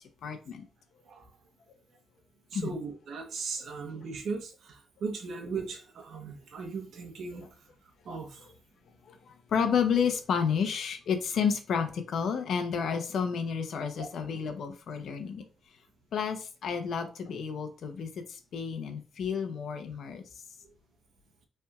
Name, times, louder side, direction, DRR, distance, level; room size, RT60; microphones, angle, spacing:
voice 1, 0.2-0.6 2.5-2.7 9.5-15.4 16.1-20.2, left 6 dB, 70° left, 7 dB, 0.8 m, -30 dB
voice 2, 2.5-7.5 8.0-8.5 14.0-14.1, right 4 dB, 70° right, 3 dB, 1.0 m, -38 dB
5.6 x 3.5 x 2.4 m, 0.35 s
cardioid pair, 120°, 0 cm